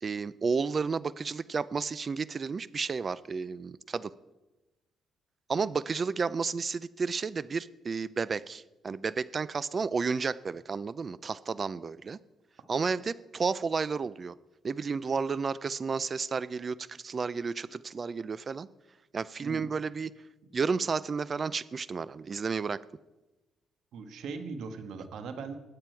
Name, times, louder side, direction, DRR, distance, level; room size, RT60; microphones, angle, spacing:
voice 1, 0.0-4.1 5.5-12.2 12.7-14.3 14.6-18.7 19.1-20.1 20.5-22.8, right 5 dB, 40° right, 18 dB, 0.5 m, -32 dB
voice 2, 23.9-25.6, right 5 dB, 75° right, 7 dB, 1.5 m, -39 dB
20.0 x 8.8 x 4.6 m, 1.1 s
cardioid pair, 90°, 0 cm